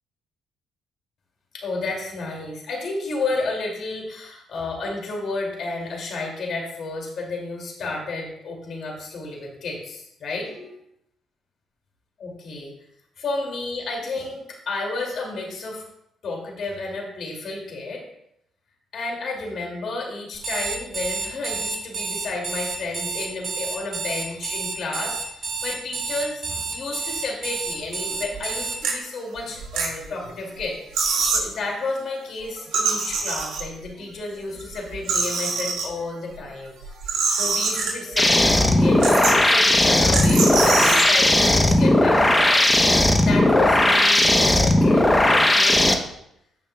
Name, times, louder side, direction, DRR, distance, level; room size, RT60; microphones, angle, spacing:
voice 1, 1.5-10.8 12.2-12.7 13.2-15.8 16.2-18.0 18.9-30.8 31.3-36.9 37.3-42.6 43.2-46.0, left 3 dB, 65° left, 0 dB, 2.5 m, -31 dB
Alarm, 20.3-28.8, right 4 dB, 40° right, 2.1 m, -30 dB
sound 1, 28.2-28.4 28.8-28.9 29.5-30.3 30.6-30.7 30.9-31.5 32.6-33.9 34.5-35.9 36.8-38.2 38.6-38.7 39.0-39.5 40.1-41.1, right 4 dB, 85° right, 2.5 m, -24 dB
sound 2, 38.2-45.9, left 1 dB, 15° left, 0.9 m, -17 dB
15.5 x 5.6 x 2.3 m, 0.76 s
cardioid pair, 90°, 0 cm